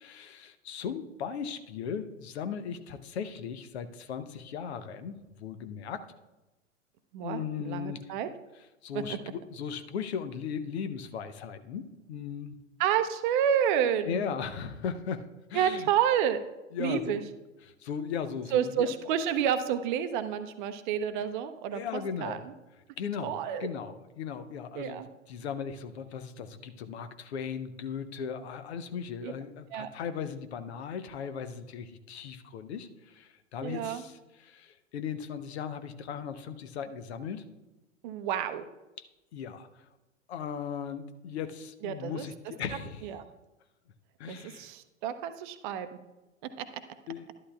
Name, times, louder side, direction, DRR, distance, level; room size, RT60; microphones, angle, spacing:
voice 1, 0.0-6.1 7.2-8.0 8.8-12.6 14.0-15.9 16.7-17.2 17.6-18.9 21.2-21.3 21.7-22.4 23.0-37.5 39.0-39.1 39.3-39.9 40.3-43.1 44.2-44.7 47.1-47.3, left 7 dB, 55° left, 10 dB, 0.8 m, -37 dB
voice 2, 7.1-8.3 8.9-9.2 12.8-14.2 15.5-16.4 16.8-17.2 18.5-22.4 23.2-23.7 24.8-25.1 29.2-29.3 29.7-29.9 33.6-34.0 38.0-38.6 41.8-42.3 43.0-43.2 44.3-45.9 46.6-46.7, right 9 dB, 40° right, 10 dB, 0.7 m, -29 dB
12.0 x 11.0 x 2.3 m, 1.0 s
figure-of-eight pair, 100°, 38 cm